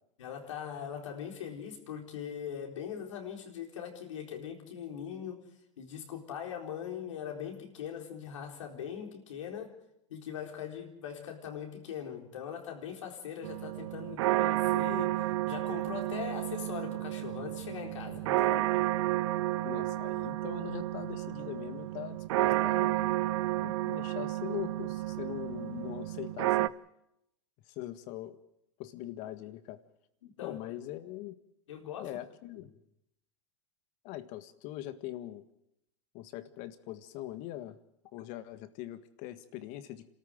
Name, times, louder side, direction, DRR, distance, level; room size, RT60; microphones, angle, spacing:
voice 1, 0.2-5.4 5.8-9.8 10.1-15.2 15.5-18.6 30.2-30.6 31.7-32.2 32.6-32.7, left 8 dB, 80° left, 2 dB, 4.3 m, -41 dB
sound 1, 13.4-26.7, right 16 dB, 70° right, 0.7 m, -31 dB
voice 2, 18.2-18.7 19.6-23.2 23.6-26.7 27.7-28.4 28.8-29.8 30.4-31.3 32.0-32.7 34.0-35.4 36.1-37.8 38.1-40.1, left 14 dB, 55° left, 11 dB, 1.7 m, -42 dB
27.5 x 13.5 x 7.8 m, 0.82 s
hypercardioid pair, 110°, 16 cm